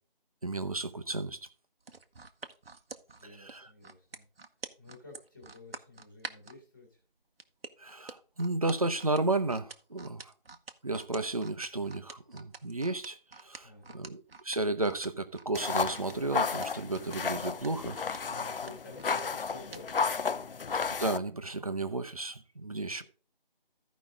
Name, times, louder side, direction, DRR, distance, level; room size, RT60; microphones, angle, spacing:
voice 1, 0.4-1.4 3.2-3.7 7.8-10.3 10.8-18.0 21.0-23.0, right 2 dB, 40° right, 0.7 m, -33 dB
sound 1, 1.8-6.6 7.4-20.2 20.6-20.8, right 4 dB, 85° right, 1.0 m, -47 dB
voice 2, 3.1-4.2 4.8-7.0 13.6-14.1 18.2-20.6, left 2 dB, 15° left, 1.7 m, -51 dB
sound 2, 15.5-21.2, left 5 dB, 70° left, 0.6 m, -33 dB
14.5 x 5.2 x 3.6 m
figure-of-eight pair, 175°, 29 cm